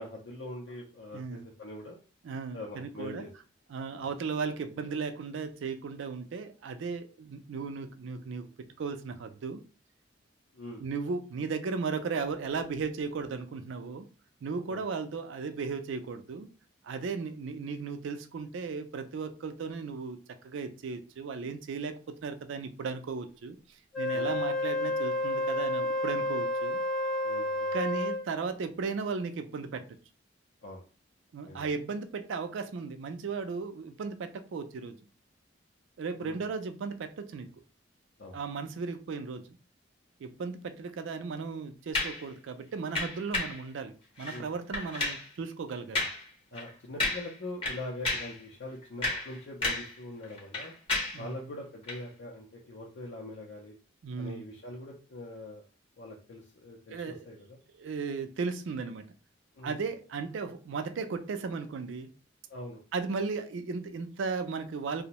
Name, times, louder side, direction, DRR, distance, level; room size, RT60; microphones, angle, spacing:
voice 1, 0.0-2.0 2.5-3.3 3.9-4.1 10.5-10.9 14.7-14.8 24.1-24.3 27.2-27.7 30.6-30.8 31.4-31.7 36.2-36.4 38.2-38.4 44.3-44.5 45.9-46.0 46.5-50.7 51.2-53.8 54.2-55.6 56.0-57.6 59.5-59.8 62.5-62.8, left 1 dB, 65° left, -2 dB, 0.5 m, -43 dB
voice 2, 1.1-1.5 2.2-3.3 3.7-8.5 8.8-9.6 10.8-14.1 14.4-16.5 16.8-20.2 20.4-26.8 27.7-29.8 31.3-35.0 36.0-37.5 38.3-39.5 40.2-46.0 51.1-51.4 54.0-54.5 56.9-57.4 57.7-59.1 59.6-62.1 62.9-65.1, right 4 dB, 70° right, 9 dB, 0.3 m, -36 dB
Wind instrument woodwind instrument, 23.9-28.3, left 2 dB, 5° left, 0.3 m, -30 dB
sound 1, 41.9-42.2 43.0-43.6 44.2-44.4 44.7-45.3 46.0-46.3 46.6-46.7 47.0-47.4 47.6-48.4 48.8-50.0 50.2-51.2 51.8-52.0, left 2 dB, 30° left, 0.8 m, -32 dB
2.5 x 2.0 x 2.9 m, 0.36 s
head